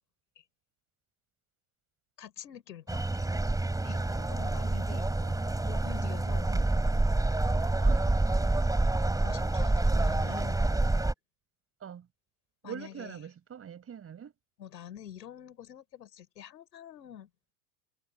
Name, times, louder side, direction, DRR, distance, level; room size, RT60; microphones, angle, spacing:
voice 1, 2.2-3.3 3.8-5.1 5.6-6.5 9.2-10.7 12.6-13.2 14.6-17.3, left 10 dB, 85° left, 6.0 m, -46 dB
sound 1, 2.9-11.1, right 2 dB, 5° right, 3.8 m, -27 dB
voice 2, 4.9-5.6 6.5-6.7 7.8-8.2 10.2-10.5 11.8-12.1 12.6-14.3, right 8 dB, 30° right, 4.6 m, -44 dB
hypercardioid pair, 100°, 49 cm